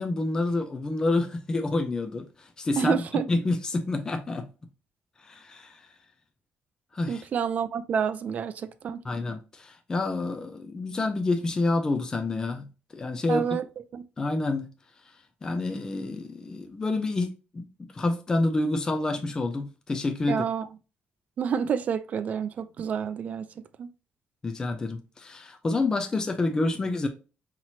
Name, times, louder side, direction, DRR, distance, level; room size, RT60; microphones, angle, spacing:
voice 1, 0.0-3.0 3.3-4.5 5.2-5.8 6.9-7.2 9.0-12.7 12.9-13.4 14.2-14.7 15.4-17.7 17.9-20.4 24.4-27.1, left 2 dB, 20° left, 0.4 m, -28 dB
voice 2, 2.8-3.3 7.1-9.0 13.3-13.6 13.9-14.0 20.3-20.7 21.4-23.9, right 7 dB, 40° right, 0.4 m, -29 dB
5.7 x 3.0 x 2.7 m
cardioid pair, 175°, 4 cm